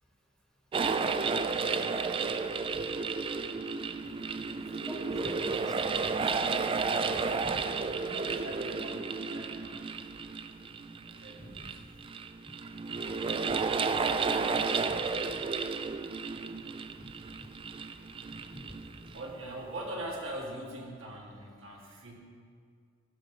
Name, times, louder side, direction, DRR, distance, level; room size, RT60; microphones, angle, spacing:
sound 1, 0.7-19.3, right 4 dB, 25° right, 0.3 m, -32 dB
voice 1, 3.9-4.2 4.5-6.0 7.0-7.7 8.2-8.3 11.4-11.6 12.9-13.0 13.5-13.6 13.9-14.0 14.8-15.0 15.4-15.5 16.9-17.1 17.3-17.5 18.3-19.1, equal, 5° left, -1 dB, 1.1 m, -47 dB
voice 2, 7.7-9.8 11.0-11.8 19.1-22.1, right 1 dB, 70° right, -2 dB, 1.8 m, -42 dB
11.5 x 6.2 x 5.4 m, 2.2 s
head